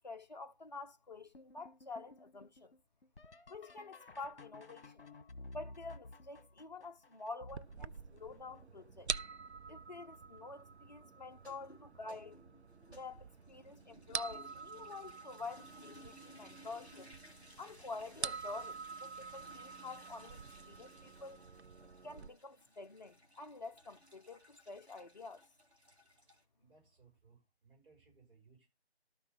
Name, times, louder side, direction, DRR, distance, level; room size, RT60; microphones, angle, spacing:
voice 1, 0.0-2.7 3.5-5.0 5.5-9.1 9.7-12.4 12.9-17.1 17.6-20.4 20.7-21.4 22.0-25.4, left 3 dB, 40° left, 0.7 m, -48 dB
sound 1, 1.3-9.0 9.7-10.2 10.7-11.3 12.6-12.7 13.4-13.7 15.9-16.0 18.3-18.4, left 2 dB, 55° left, 1.6 m, -55 dB
sound 2, 7.5-22.3, right 5 dB, 75° right, 0.7 m, -47 dB
sound 3, 11.3-26.4, equal, 5° right, 2.2 m, -60 dB
voice 2, 26.6-28.7, right 4 dB, 50° right, 6.5 m, -65 dB
13.0 x 5.8 x 5.5 m
figure-of-eight pair, 160°, 34 cm